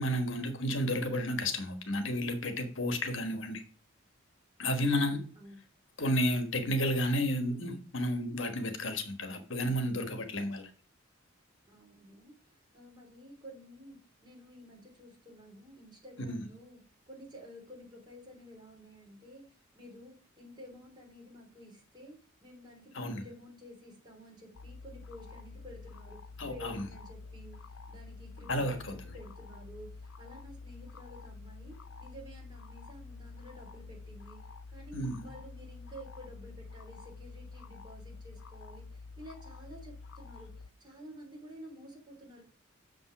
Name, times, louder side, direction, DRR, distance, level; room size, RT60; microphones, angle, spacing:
voice 1, 0.0-3.6 4.6-5.2 6.0-10.7 16.3-16.4 22.9-23.2 26.4-26.8 28.5-28.8 34.9-35.2, equal, 65° left, 8 dB, 1.3 m, -31 dB
voice 2, 4.8-5.6 11.7-16.8 17.1-34.4 34.7-42.4, equal, 20° right, -1 dB, 3.3 m, -52 dB
sound 1, 24.5-40.7, left 4 dB, 85° left, 0.7 m, -48 dB
6.7 x 5.4 x 5.9 m, 0.40 s
head